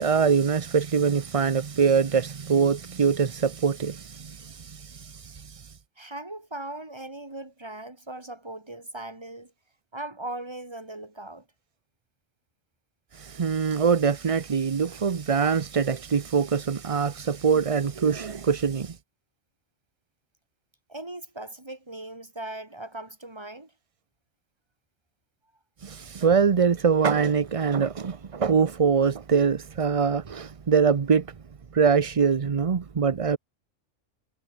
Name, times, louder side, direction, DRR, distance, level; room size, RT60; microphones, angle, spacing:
voice 1, 0.0-5.7 13.1-19.0 25.8-31.3 31.7-33.4, right 6 dB, 35° right, 0.5 m, -23 dB
voice 2, 6.0-9.5 9.9-11.5 20.9-23.7, right 2 dB, 20° right, 2.5 m, -39 dB
omnidirectional pair, 1.4 m